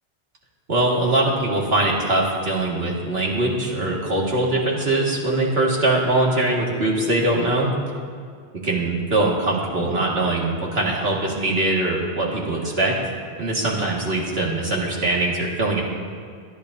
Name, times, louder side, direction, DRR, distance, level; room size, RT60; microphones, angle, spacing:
voice 1, 0.7-7.7 8.6-12.9 13.4-15.8, right 2 dB, 65° right, -3 dB, 2.3 m, -22 dB
25.5 x 10.0 x 2.7 m, 2.1 s
omnidirectional pair, 1.1 m